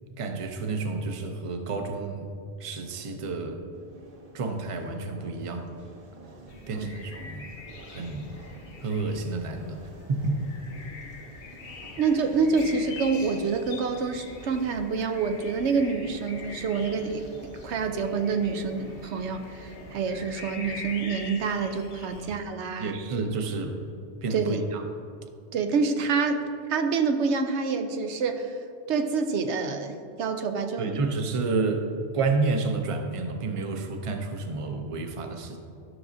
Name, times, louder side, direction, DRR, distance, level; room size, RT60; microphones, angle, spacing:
voice 1, 0.0-2.3 2.6-3.6 4.3-5.8 6.7-7.5 7.9-8.3 8.8-9.8 10.1-10.5 22.2-22.3 22.8-23.8 24.2-24.8 30.8-31.9 32.1-35.6, right 3 dB, 35° right, 5 dB, 0.6 m, -30 dB
sound 1, 3.7-21.0, right 1 dB, 55° right, 1.0 m, -48 dB
sound 2, 6.5-22.4, left 3 dB, 80° left, 1.1 m, -44 dB
voice 2, 12.0-17.3 17.6-23.0 24.3-24.6 25.5-26.4 26.7-28.6 28.9-31.0, right 5 dB, 90° right, 7 dB, 0.9 m, -27 dB
12.5 x 6.1 x 2.6 m, 2.4 s
omnidirectional pair, 1.1 m